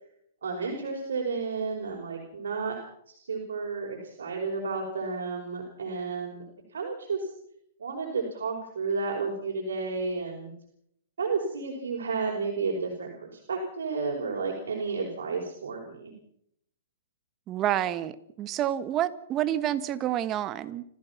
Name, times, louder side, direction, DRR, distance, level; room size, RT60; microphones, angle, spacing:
voice 1, 0.4-2.8 3.1-6.4 6.7-7.3 7.8-10.5 11.2-16.1, right 4 dB, 85° right, 0 dB, 5.3 m, -32 dB
voice 2, 17.5-20.8, right 11 dB, 25° right, 14 dB, 1.3 m, -28 dB
30.0 x 15.0 x 6.0 m, 0.74 s
hypercardioid pair, 145°, 0 cm